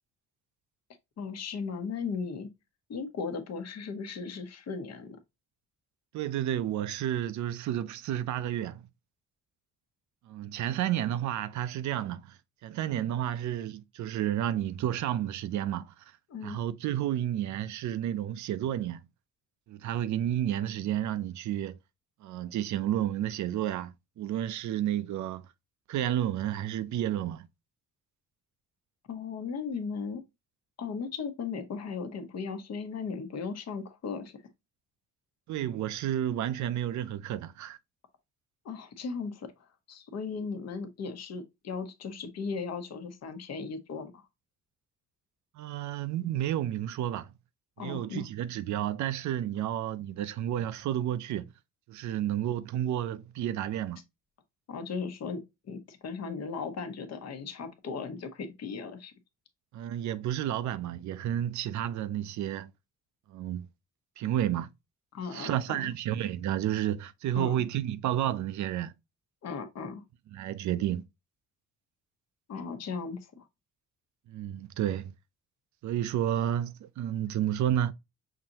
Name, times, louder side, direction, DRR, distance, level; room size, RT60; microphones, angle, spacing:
voice 1, 1.2-2.5 2.9-5.2 16.3-16.6 29.1-30.2 30.8-34.4 38.6-39.5 39.9-44.2 47.8-48.3 54.7-55.4 55.7-59.1 65.1-65.9 67.3-67.6 69.4-70.0 72.5-73.5, left 5 dB, 60° left, 1.0 m, -37 dB
voice 2, 6.1-8.8 10.3-15.9 16.4-19.0 19.7-21.8 22.2-25.5 25.9-27.5 35.5-37.8 45.6-47.3 47.8-51.5 51.9-54.0 59.7-62.7 63.3-63.7 64.2-64.7 65.3-68.9 70.3-71.0 74.3-75.1 75.8-77.9, right 11 dB, 70° right, 0.5 m, -31 dB
5.7 x 2.7 x 2.8 m
cardioid pair, 90°, 30 cm